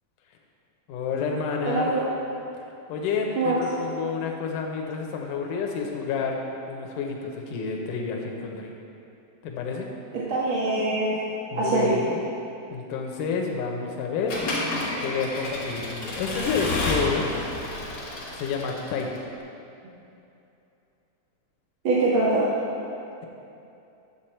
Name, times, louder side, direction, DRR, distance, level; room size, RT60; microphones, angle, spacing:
voice 1, 0.9-1.9 2.9-8.7 9.4-9.9 11.5-12.2 12.7-14.3 15.0-17.3 18.3-19.3, left 5 dB, 85° left, 1 dB, 2.4 m, -29 dB
voice 2, 1.6-2.1 3.3-3.6 10.1-11.1 11.5-12.0 21.8-22.5, right 2 dB, 55° right, -7 dB, 1.7 m, -23 dB
Accelerating revving vroom / Mechanisms, 14.3-19.2, left 2 dB, 60° left, 2.8 m, -30 dB
11.0 x 7.7 x 4.4 m, 2.7 s
omnidirectional pair, 3.6 m